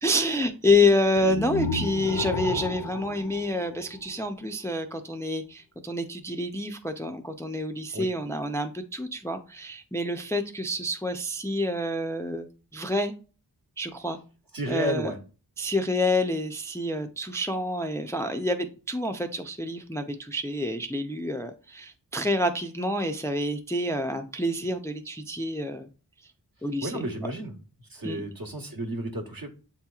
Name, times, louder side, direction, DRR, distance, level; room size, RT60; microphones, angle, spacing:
voice 1, 0.0-12.5 12.7-13.1 13.8-14.2 14.7-15.1 15.6-25.9 26.6-27.3 28.0-28.2, left 1 dB, 5° left, 6 dB, 0.4 m, -28 dB
sound 1, 1.2-4.3, left 4 dB, 75° left, 0.5 m, -33 dB
voice 2, 14.5-15.2 26.8-27.5 27.9-29.5, right 1 dB, 60° right, 4 dB, 1.0 m, -32 dB
7.3 x 2.9 x 2.3 m, 0.36 s
wide cardioid pair, 40°, 40 cm